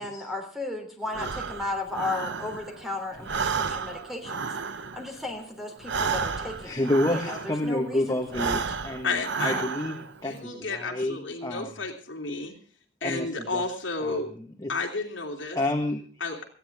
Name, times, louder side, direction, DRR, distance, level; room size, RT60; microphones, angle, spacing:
voice 1, 0.0-4.5 4.9-6.9 7.1-8.6 9.5-9.7, left 2 dB, ahead, 4 dB, 3.3 m, -35 dB
Breathing, 1.1-2.9 3.2-7.8 8.2-10.2, right 5 dB, 60° right, 0.9 m, -32 dB
voice 2, 6.6-11.7 13.0-13.6 14.0-14.7 15.0-15.1 15.5-16.0 16.3-16.4, left 1 dB, 20° left, 2 dB, 1.5 m, -30 dB
voice 3, 9.0-9.6 10.2-12.5 13.0-14.3 14.7-15.6 16.2-16.4, left 3 dB, 65° left, 2 dB, 3.2 m, -31 dB
19.0 x 15.5 x 3.6 m, 0.42 s
head